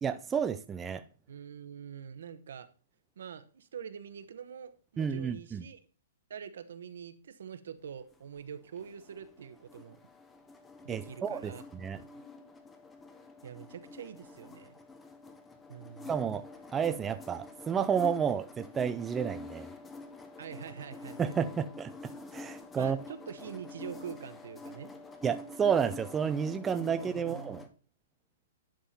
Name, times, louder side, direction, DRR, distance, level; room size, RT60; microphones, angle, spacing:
voice 1, 0.0-1.0 5.0-5.6 10.9-12.0 16.1-16.4 16.7-19.7 21.2-23.0 25.2-27.6, right 7 dB, 15° right, 0.3 m, -31 dB
voice 2, 1.3-2.7 3.2-5.8 6.3-10.0 10.8-12.1 13.4-14.7 15.7-16.2 20.4-21.3 22.8-24.9 26.9-27.7, right 8 dB, 75° right, 0.9 m, -45 dB
sound 1, 8.0-27.7, left 2 dB, 10° left, 0.7 m, -48 dB
10.5 x 3.7 x 4.2 m
hypercardioid pair, 155°, 0 cm